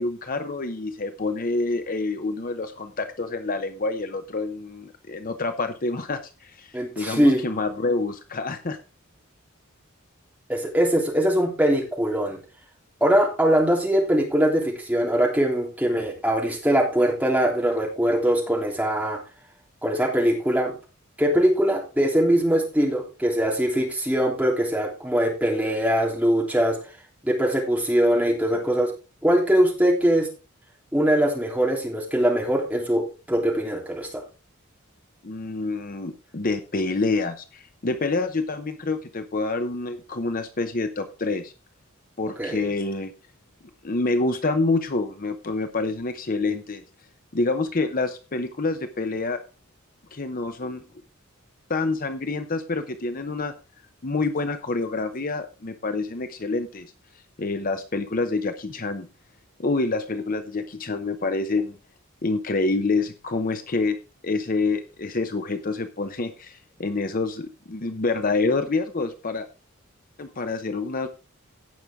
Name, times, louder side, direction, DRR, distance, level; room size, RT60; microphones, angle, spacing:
voice 1, 0.0-8.8 35.2-41.5 42.2-43.1 43.8-46.8 47.3-49.4 50.1-50.8 51.7-53.5 54.0-56.9 57.4-59.1 59.6-61.8 62.2-64.0 64.2-69.5 70.2-71.1, left 3 dB, 40° left, 8 dB, 0.8 m, -27 dB
voice 2, 6.7-7.4 10.5-12.4 13.0-19.2 19.8-20.7 21.2-26.8 27.2-28.9 29.2-30.3 30.9-34.2 42.4-42.6, equal, 5° right, -1 dB, 3.3 m, -22 dB
17.0 x 6.1 x 3.7 m, 0.31 s
head